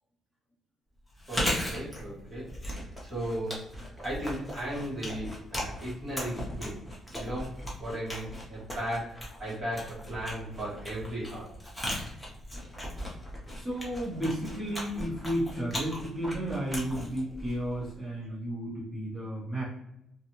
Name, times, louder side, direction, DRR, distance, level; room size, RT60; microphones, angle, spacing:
Chewing mastication, 1.1-18.0, equal, 5° left, 0.9 m, -38 dB
voice 1, 1.3-3.6 4.0-6.8 7.1-7.5 7.8-11.5 18.2-18.3, right 1 dB, 35° right, -7 dB, 1.4 m, -36 dB
voice 2, 13.5-19.6, right 1 dB, 15° right, -8 dB, 1.2 m, -33 dB
2.5 x 2.3 x 2.9 m, 0.82 s
cardioid pair, 90°, 0 cm